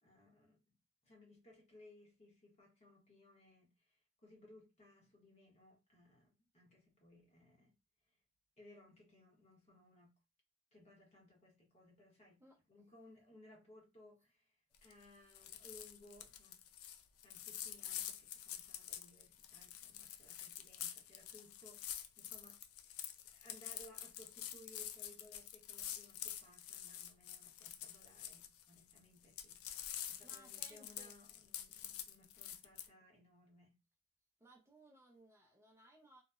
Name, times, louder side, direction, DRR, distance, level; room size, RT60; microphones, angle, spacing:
voice 1, 0.0-0.6 1.0-7.7 8.6-10.2 10.7-12.4 12.7-16.6 17.2-33.8, left 1 dB, 35° left, 0.9 m, -63 dB
voice 2, 12.4-12.9 30.2-31.1 34.4-36.2, right 1 dB, 15° right, 0.4 m, -63 dB
sound 1, 14.7-15.0 15.3-29.0 29.2-32.9, left 11 dB, 80° left, 0.3 m, -48 dB
2.7 x 2.0 x 2.3 m
head